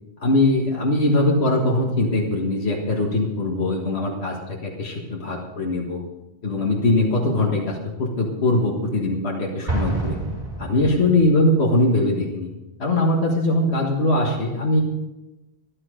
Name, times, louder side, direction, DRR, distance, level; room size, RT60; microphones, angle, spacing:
voice 1, 0.2-6.0 6.4-10.2 10.6-12.5 12.8-14.8, left 2 dB, 80° left, -1 dB, 2.0 m, -21 dB
Explosion, 9.7-11.5, right 2 dB, 40° right, 4.4 m, -28 dB
14.0 x 12.5 x 5.2 m, 1.0 s
omnidirectional pair, 1.1 m